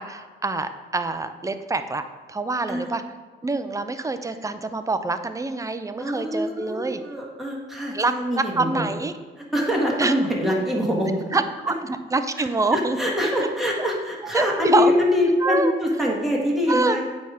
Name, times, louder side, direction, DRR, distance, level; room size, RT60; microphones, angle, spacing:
voice 1, 0.0-2.0 2.3-3.0 3.4-7.0 7.9-9.1 10.0-10.1 11.3-13.0 14.3-14.9 15.4-15.7 16.7-17.0, right 3 dB, 15° right, 10 dB, 0.4 m, -25 dB
voice 2, 2.7-3.0 6.0-8.9 9.4-11.2 12.4-12.5 12.7-17.0, left 1 dB, ahead, -3 dB, 1.7 m, -24 dB
8.2 x 3.5 x 5.0 m, 1.3 s
cardioid pair, 90°, 20 cm